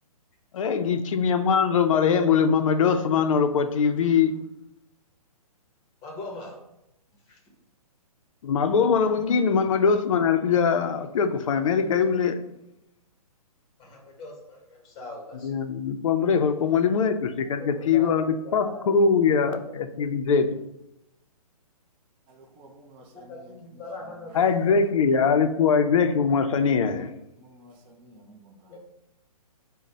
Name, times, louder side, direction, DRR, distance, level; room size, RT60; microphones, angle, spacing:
voice 1, 0.5-4.3 8.4-12.4 15.4-20.5 24.3-27.1, left 6 dB, 60° left, 8 dB, 0.4 m, -22 dB
voice 2, 6.0-6.6 7.3-7.4 13.8-15.5 17.6-18.9 19.3-19.6 23.1-25.0 28.7-28.8, left 2 dB, 20° left, 0 dB, 0.8 m, -41 dB
voice 3, 22.3-25.0 27.4-28.8, right 1 dB, 20° right, 1 dB, 0.4 m, -52 dB
5.0 x 2.1 x 4.1 m, 0.86 s
hypercardioid pair, 150°, 19 cm